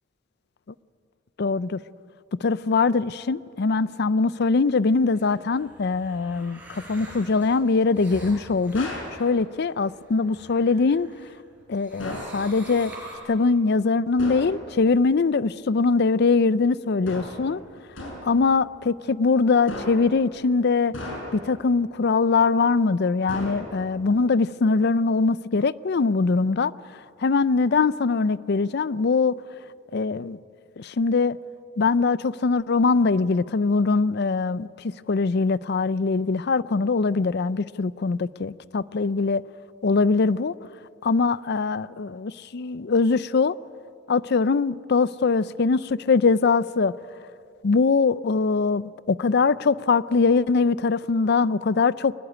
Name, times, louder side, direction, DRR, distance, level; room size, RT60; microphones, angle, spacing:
voice 1, 1.4-1.8 2.4-8.9 9.2-11.1 11.7-12.9 13.3-17.6 18.2-20.9 21.3-26.7 27.2-29.3 29.9-30.4 30.8-31.4 31.8-39.4 39.8-40.5 41.0-43.5 44.1-46.9 47.6-52.2, left 4 dB, 55° left, 0.5 m, -22 dB
sound 1, 5.0-11.3 11.7-13.2, right 1 dB, 10° right, 5.8 m, -45 dB
sound 2, 8.7-9.2 12.0-12.4 14.2-14.6 17.0-17.5 18.0-18.4 19.7-20.1 20.9-21.5 23.3-23.9, left 1 dB, 80° left, 6.3 m, -35 dB
22.5 x 19.5 x 9.6 m
head